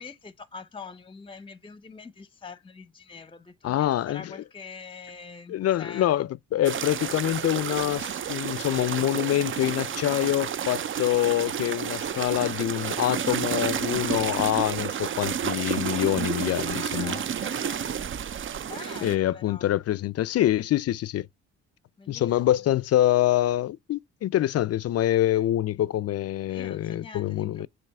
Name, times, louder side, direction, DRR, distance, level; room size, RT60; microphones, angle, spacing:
voice 1, 0.0-6.2 16.6-18.1 18.6-19.8 22.0-22.3 26.5-27.7, left 5 dB, 15° left, 0.8 m, -44 dB
voice 2, 3.6-4.3 5.5-17.2 19.0-21.3 22.1-27.7, left 13 dB, 55° left, 0.4 m, -25 dB
sound 1, 6.6-19.2, right 8 dB, 40° right, 0.6 m, -30 dB
7.4 x 3.0 x 4.7 m
cardioid pair, 90°, 30 cm